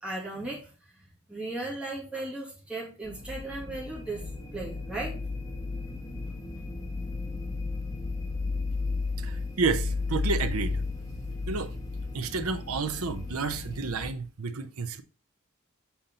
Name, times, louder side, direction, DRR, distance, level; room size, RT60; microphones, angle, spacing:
voice 1, 0.0-0.7 1.3-4.2 4.5-5.2, right 2 dB, 5° right, 2.3 m, -36 dB
sound 1, 3.0-14.1, left 3 dB, 15° left, 1.3 m, -34 dB
voice 2, 9.2-10.8 11.5-11.7 12.1-15.0, right 4 dB, 90° right, 0.7 m, -30 dB
7.2 x 4.2 x 3.9 m
head